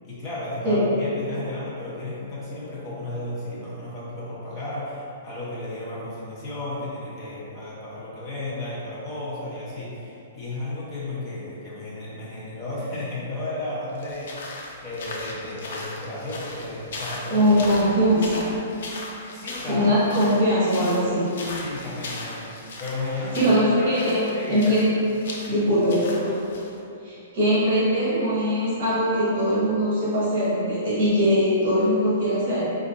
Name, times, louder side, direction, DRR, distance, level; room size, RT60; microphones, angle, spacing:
voice 1, 0.0-17.7 19.3-19.9 21.6-23.5 23.8-24.7 25.5-25.7, left 2 dB, 20° left, -8 dB, 0.8 m, -33 dB
sound 1, 13.9-26.7, left 2 dB, 60° left, 0.5 m, -38 dB
voice 2, 17.3-18.5 19.7-21.3 23.3-24.2 24.5-24.9 25.5-26.3 27.0-32.7, equal, 50° right, -10 dB, 1.2 m, -21 dB
4.1 x 2.5 x 2.6 m, 2.8 s
hypercardioid pair, 170°, 0 cm